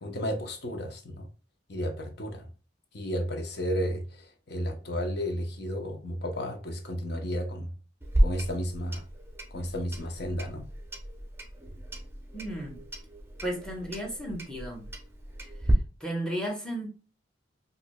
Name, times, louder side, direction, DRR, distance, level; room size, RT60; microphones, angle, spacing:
voice 1, 0.0-1.3 1.7-2.5 2.9-7.7 8.2-9.0 9.5-10.7, equal, 60° left, 0.9 m, -33 dB
Clock, 8.0-15.7, right 1 dB, 15° right, 0.6 m, -33 dB
voice 2, 12.3-12.8 13.4-14.9 15.4-15.5 16.0-16.9, right 1 dB, 5° left, 1.1 m, -34 dB
4.7 x 2.7 x 2.2 m
head